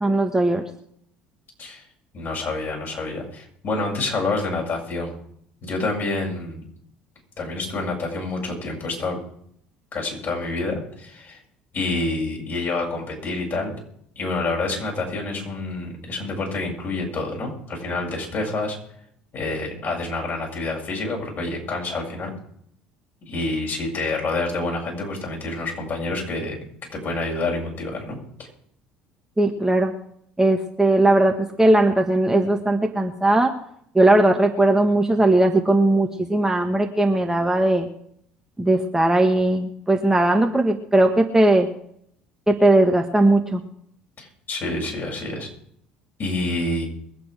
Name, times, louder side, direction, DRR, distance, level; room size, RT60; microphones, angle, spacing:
voice 1, 0.0-0.6 29.4-29.9 30.4-33.5 33.9-37.9 38.6-41.7 42.5-43.6, right 2 dB, 10° right, 3 dB, 1.6 m, -18 dB
voice 2, 2.1-5.2 5.6-6.6 7.4-9.2 9.9-11.4 11.7-13.7 14.2-18.8 19.3-22.3 23.2-26.6 26.9-28.5 44.2-45.5 46.2-46.9, left 2 dB, 45° left, 0 dB, 7.8 m, -28 dB
22.5 x 8.6 x 5.0 m, 0.68 s
hypercardioid pair, 65°, 5 cm